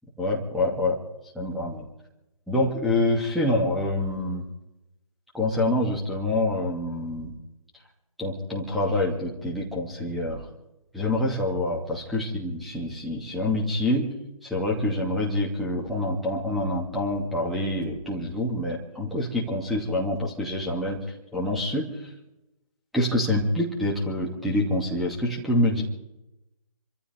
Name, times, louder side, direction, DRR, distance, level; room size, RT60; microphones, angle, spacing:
voice 1, 0.2-1.0 1.3-1.8 2.5-4.4 5.3-7.3 8.2-10.5 10.9-14.1 14.4-21.0 21.3-21.9 22.9-25.8, left 1 dB, ahead, -3 dB, 2.6 m, -26 dB
28.5 x 14.0 x 3.5 m, 0.93 s
figure-of-eight pair, 150°, 18 cm